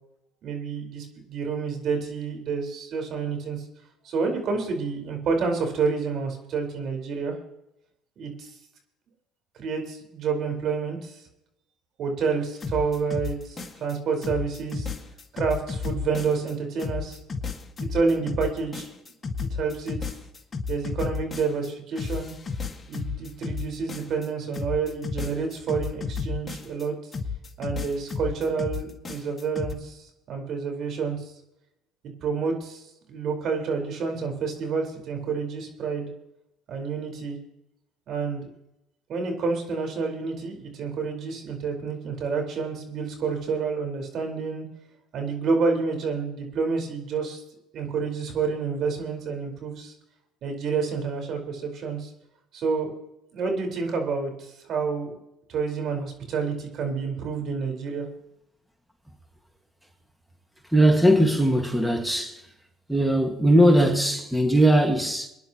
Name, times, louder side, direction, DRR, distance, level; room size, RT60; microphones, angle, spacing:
voice 1, 0.4-3.6 4.0-7.3 8.2-8.5 9.6-11.2 12.0-14.9 15.3-17.2 17.8-18.9 19.3-20.1 20.7-22.3 22.9-26.9 27.6-31.3 32.2-36.1 36.7-37.4 38.1-38.5 39.1-44.6 45.1-47.4 47.7-49.9 50.4-52.1 52.5-53.0 53.3-55.1 55.5-58.1, right 5 dB, 55° right, 4.7 m, -29 dB
sound 1, 12.6-13.9 14.2-16.5 16.8-21.7 22.0-24.3 24.5-26.8 27.1-29.7, left 5 dB, 25° left, 1.9 m, -32 dB
voice 2, 60.7-62.4 62.9-65.3, right 1 dB, 5° right, 1.9 m, -19 dB
26.0 x 10.5 x 3.0 m
supercardioid pair, 80°, 0 cm